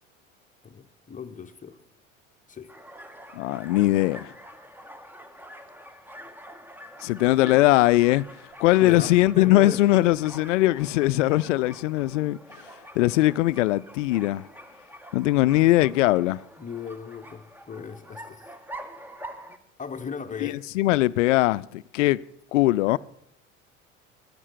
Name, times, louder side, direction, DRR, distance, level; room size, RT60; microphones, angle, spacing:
voice 1, 0.6-1.8 2.5-2.7 8.8-9.8 16.6-18.4 19.8-20.7, left 6 dB, 20° left, 1.0 m, -37 dB
sound 1, 2.7-19.6, equal, 5° right, 1.0 m, -45 dB
voice 2, 3.3-4.3 7.0-8.2 8.6-12.4 13.0-14.4 15.1-16.4 20.4-22.2 22.5-23.0, left 17 dB, 70° left, 0.5 m, -21 dB
15.5 x 10.5 x 4.6 m
figure-of-eight pair, 70°, 38 cm